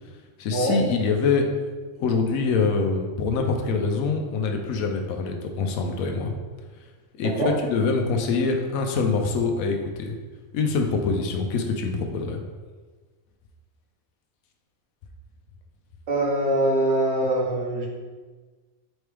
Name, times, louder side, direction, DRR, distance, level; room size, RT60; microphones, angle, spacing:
voice 1, 0.4-1.5 2.0-6.3 7.2-7.3 7.7-10.1 10.5-12.4, left 4 dB, 80° left, 3 dB, 1.0 m, -24 dB
voice 2, 16.1-17.9, right 1 dB, 65° right, -1 dB, 1.0 m, -23 dB
4.3 x 3.1 x 3.3 m, 1.4 s
omnidirectional pair, 1.4 m